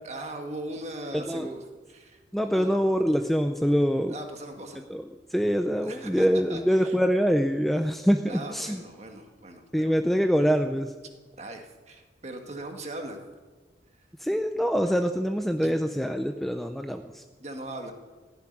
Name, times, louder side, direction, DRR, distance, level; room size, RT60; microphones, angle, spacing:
voice 1, 0.0-2.8 4.1-4.8 5.8-7.0 8.3-10.0 11.4-13.2 14.0-14.1 15.6-15.7 17.4-17.9, right 1 dB, 35° right, 4 dB, 1.6 m, -39 dB
voice 2, 2.3-4.1 4.9-5.0 5.3-8.8 9.7-10.9 14.2-17.2, equal, ahead, 6 dB, 0.5 m, -24 dB
16.0 x 7.2 x 9.9 m, 1.4 s
head